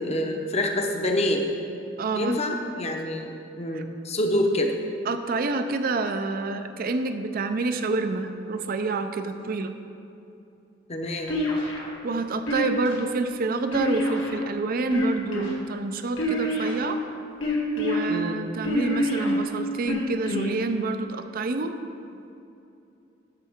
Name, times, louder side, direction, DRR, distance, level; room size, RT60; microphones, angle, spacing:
voice 1, 0.0-1.5 2.1-4.7 10.9-11.3 18.1-18.4, left 1 dB, 35° left, 2 dB, 0.8 m, -26 dB
voice 2, 2.0-2.4 3.7-3.8 5.1-9.7 12.0-17.0 17.8-21.8, right 3 dB, 50° right, 8 dB, 0.5 m, -28 dB
sound 1, 11.3-11.9 12.5-13.0 13.7-14.4 14.8-15.5 16.2-16.9 17.4-18.0 18.6-19.3 19.9-20.5, left 1 dB, 80° left, 1.5 m, -26 dB
12.5 x 6.7 x 3.6 m, 2.7 s
head